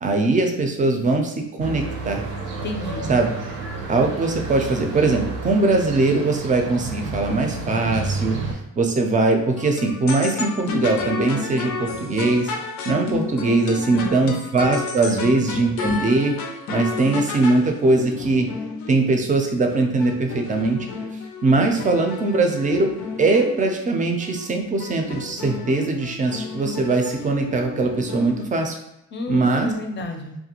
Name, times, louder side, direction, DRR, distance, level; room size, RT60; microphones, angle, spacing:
voice 1, 0.0-2.2 3.1-3.3 3.9-12.5 12.9-16.4 16.7-18.5 18.9-20.9 21.4-22.9 23.2-28.8 29.3-29.7, right 3 dB, 25° right, 4 dB, 0.5 m, -21 dB
sound 1, 1.6-8.5, right 3 dB, 80° right, 0.6 m, -31 dB
voice 2, 2.6-3.1 13.9-14.3 15.0-15.4 29.1-30.4, left 3 dB, 40° left, 3 dB, 0.5 m, -31 dB
sound 2, 9.6-19.0 19.7-23.8 24.2-24.5 24.8-28.4, left 4 dB, 85° left, 0.5 m, -32 dB
2.4 x 2.2 x 2.9 m, 0.85 s
cardioid pair, 90°, 30 cm